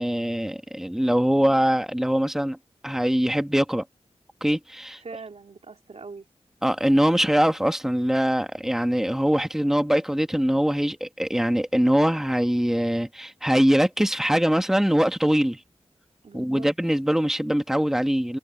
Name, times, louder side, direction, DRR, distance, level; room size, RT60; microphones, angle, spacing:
voice 1, 0.0-2.6 2.8-3.8 4.4-5.0 6.6-15.6 16.3-18.4, equal, 5° right, 1.6 m, -22 dB
voice 2, 5.0-6.3 16.2-16.7, right 4 dB, 70° right, 3.2 m, -42 dB
wide cardioid pair, 75°, 11 cm